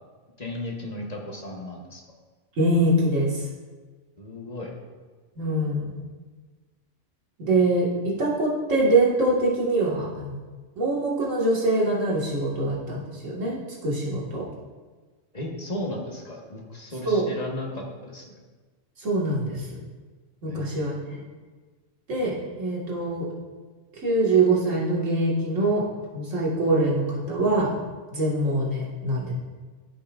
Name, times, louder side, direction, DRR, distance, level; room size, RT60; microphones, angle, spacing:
voice 1, 0.4-2.0 4.2-4.7 15.3-18.4 20.4-20.7, left 1 dB, 35° left, -1 dB, 1.3 m, -35 dB
voice 2, 2.6-3.5 5.4-6.0 7.5-10.4 10.8-14.5 17.1-17.3 19.0-19.7 20.4-21.2 22.1-23.3 24.0-25.9 26.1-27.8 28.1-29.3, right 2 dB, 85° right, -5 dB, 2.1 m, -24 dB
14.0 x 5.7 x 2.5 m, 1.4 s
omnidirectional pair, 1.3 m